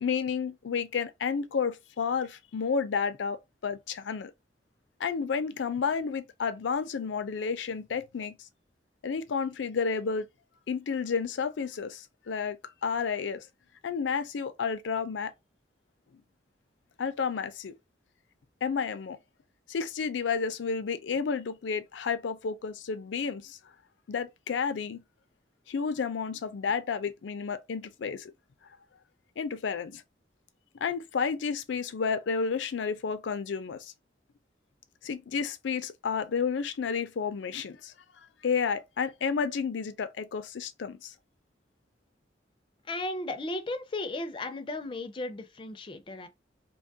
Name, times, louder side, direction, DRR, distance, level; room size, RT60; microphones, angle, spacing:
voice 1, 0.0-4.3 5.0-8.4 9.0-10.3 10.7-12.6 12.8-13.5 13.8-15.3 17.0-17.8 18.6-19.2 19.7-23.6 24.1-25.0 25.7-28.3 29.4-30.0 30.8-33.9 35.0-37.9 38.4-41.1, left 5 dB, 90° left, 0.4 m, -31 dB
voice 2, 42.9-46.3, left 2 dB, 30° left, 0.4 m, -35 dB
2.8 x 2.3 x 2.7 m
head